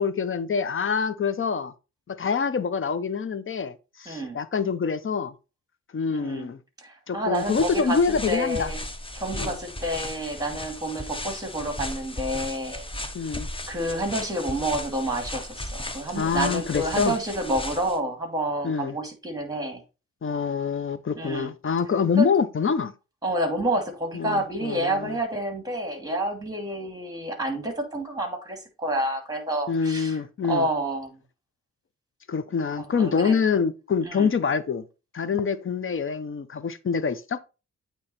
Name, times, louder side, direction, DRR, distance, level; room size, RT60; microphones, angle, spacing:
voice 1, 0.0-1.7 2.1-5.3 5.9-6.6 7.1-8.7 9.3-9.6 13.1-13.5 16.2-17.1 18.6-18.9 20.2-22.9 24.1-25.2 29.7-30.7 32.3-34.8 35.1-37.4, left 6 dB, 45° left, 0.8 m, -26 dB
voice 2, 4.1-4.4 6.1-6.5 6.8-8.8 9.2-12.8 13.7-19.8 21.2-21.5 22.2-22.3 23.2-30.2 30.5-31.2 32.8-33.4 34.0-34.3, right 1 dB, 10° right, 2.5 m, -29 dB
sound 1, 7.3-18.0, left 1 dB, 15° left, 1.0 m, -36 dB
8.6 x 3.1 x 4.3 m
cardioid pair, 70°, 30 cm